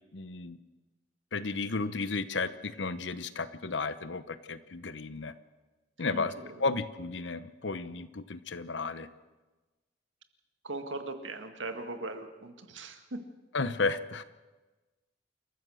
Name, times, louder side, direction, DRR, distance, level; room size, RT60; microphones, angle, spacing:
voice 1, 0.1-0.6 1.3-5.3 6.0-6.3 6.6-9.1 13.5-14.2, left 3 dB, 75° left, 13 dB, 1.0 m, -33 dB
voice 2, 6.0-6.7 10.6-13.2, right 2 dB, 90° right, 7 dB, 1.9 m, -39 dB
28.5 x 14.5 x 6.4 m, 1.2 s
head